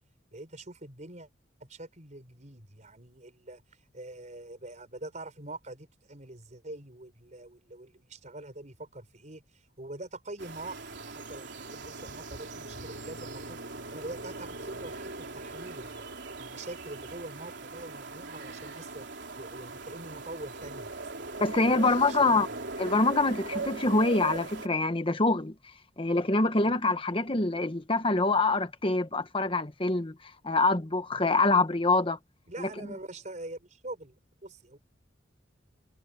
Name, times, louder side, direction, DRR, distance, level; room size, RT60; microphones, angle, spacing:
voice 1, 0.3-1.3 1.6-3.6 3.9-13.6 13.9-16.1 16.4-19.1 19.4-21.2 21.7-22.5 32.5-34.1 34.4-34.8, right 2 dB, 40° right, 4.6 m, -44 dB
sound 1, 10.4-24.7, right 3 dB, 65° right, 3.9 m, -40 dB
voice 2, 21.4-22.5 22.8-25.5 26.0-30.1 30.4-32.2 32.6-32.7, left 2 dB, 30° left, 1.4 m, -25 dB
head